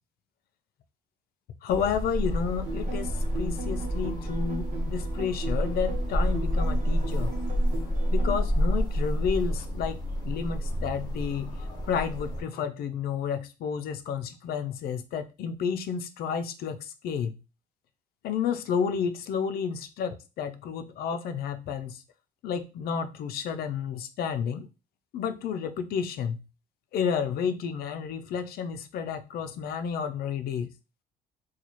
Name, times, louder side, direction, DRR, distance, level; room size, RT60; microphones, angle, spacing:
voice 1, 1.6-7.3 8.1-11.6 11.9-17.3 18.2-22.0 22.4-24.7 25.1-26.4 26.9-30.7, left 7 dB, 65° left, 0.5 m, -31 dB
sound 1, 1.7-12.4, equal, 25° left, 1.2 m, -29 dB
sound 2, 2.6-8.4, right 3 dB, 50° right, 1.0 m, -39 dB
4.0 x 2.4 x 3.0 m
cardioid pair, 110°, 17 cm